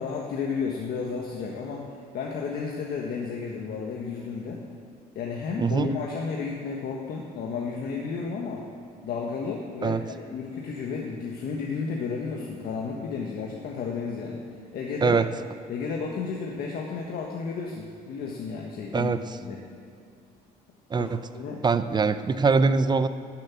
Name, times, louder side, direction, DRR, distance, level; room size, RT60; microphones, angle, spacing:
voice 1, 0.0-4.6 5.1-8.6 9.0-14.4 14.7-15.2 15.7-19.1 19.4-19.6 20.9-21.1 21.3-21.6, left 5 dB, 65° left, -1 dB, 1.5 m, -32 dB
voice 2, 5.6-6.0 9.8-10.0 15.0-15.3 18.9-19.2 20.9-21.2 21.6-23.1, right 4 dB, 25° right, 12 dB, 0.6 m, -23 dB
12.0 x 7.6 x 8.5 m, 2.5 s
cardioid pair, 110°, 17 cm